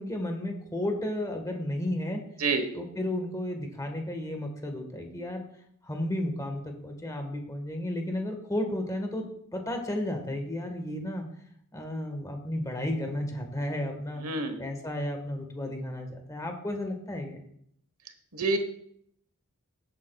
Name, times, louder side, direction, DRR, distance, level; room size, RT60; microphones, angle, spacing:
voice 1, 0.0-2.2 2.7-5.4 5.8-9.3 9.5-11.3 11.7-17.4, left 1 dB, 15° left, 4 dB, 1.5 m, -33 dB
voice 2, 14.2-14.6 18.3-18.6, right 3 dB, 70° right, 8 dB, 1.3 m, -27 dB
16.0 x 8.4 x 2.4 m, 0.69 s
head